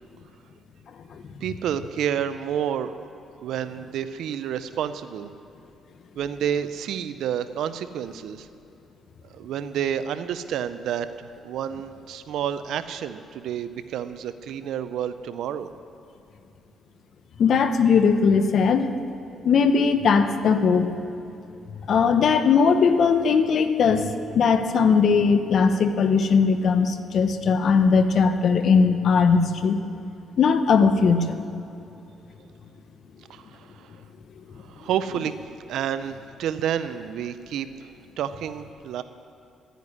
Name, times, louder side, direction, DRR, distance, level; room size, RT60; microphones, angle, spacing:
voice 1, 1.4-3.1 3.4-5.3 6.2-8.5 9.3-15.7 33.3-34.0 34.7-39.0, right 9 dB, 80° right, 11 dB, 0.5 m, -30 dB
voice 2, 17.4-18.9 19.4-20.9 21.9-29.8 30.4-31.4, left 5 dB, 60° left, 9 dB, 1.0 m, -19 dB
11.0 x 9.3 x 9.9 m, 2.8 s
cardioid pair, 90°, 0 cm